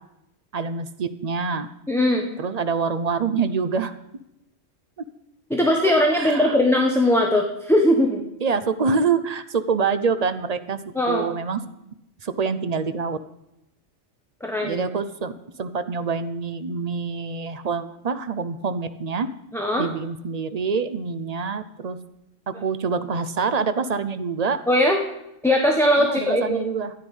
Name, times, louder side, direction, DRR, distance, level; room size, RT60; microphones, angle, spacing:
voice 1, 0.5-1.7 2.4-3.9 5.9-6.6 8.4-10.8 11.1-11.6 12.2-13.2 14.6-15.3 15.6-19.3 19.8-22.0 22.5-24.6 26.0-26.9, right 5 dB, 40° right, 11 dB, 0.6 m, -26 dB
voice 2, 1.9-2.3 5.5-8.2 10.9-11.2 14.4-14.8 19.5-19.9 24.7-25.0 25.4-26.6, left 1 dB, ahead, 1 dB, 1.0 m, -20 dB
13.5 x 9.9 x 5.4 m, 0.84 s
omnidirectional pair, 1.3 m